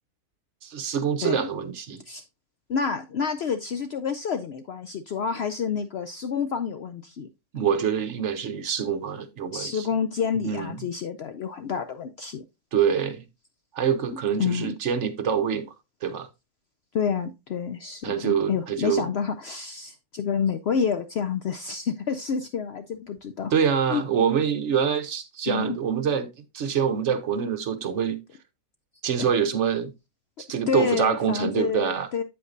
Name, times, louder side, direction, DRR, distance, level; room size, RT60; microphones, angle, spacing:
voice 1, 0.6-2.0 7.5-9.9 10.4-10.8 12.7-13.2 13.7-15.7 16.0-16.3 18.0-19.1 23.5-28.2 29.0-29.9 30.5-32.2, right 7 dB, 60° right, 1.0 m, -25 dB
voice 2, 2.7-7.3 9.5-12.4 14.4-14.7 16.9-23.5 23.9-24.0 25.5-25.8 29.2-29.3 30.7-32.2, left 6 dB, 65° left, 0.6 m, -28 dB
8.2 x 7.9 x 2.5 m
omnidirectional pair, 1.6 m